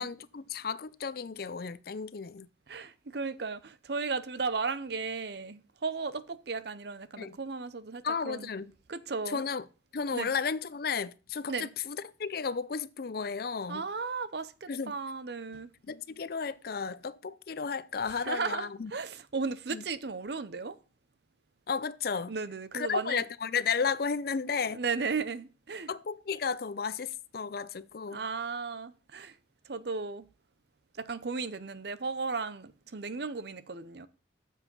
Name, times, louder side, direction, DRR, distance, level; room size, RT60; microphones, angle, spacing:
voice 1, 0.0-2.5 7.2-7.4 8.0-8.7 9.3-9.6 9.9-13.8 14.7-15.0 15.9-18.9 19.7-19.8 21.7-22.3 22.7-24.8 25.9-28.2, left 5 dB, 50° left, 0.5 m, -33 dB
voice 2, 2.7-8.5 8.9-9.4 10.1-10.3 11.5-11.7 13.7-15.7 18.1-20.8 22.3-23.2 24.6-25.9 28.0-29.4 29.6-30.3 30.9-34.1, right 4 dB, 60° right, 0.7 m, -35 dB
8.3 x 7.3 x 5.4 m
head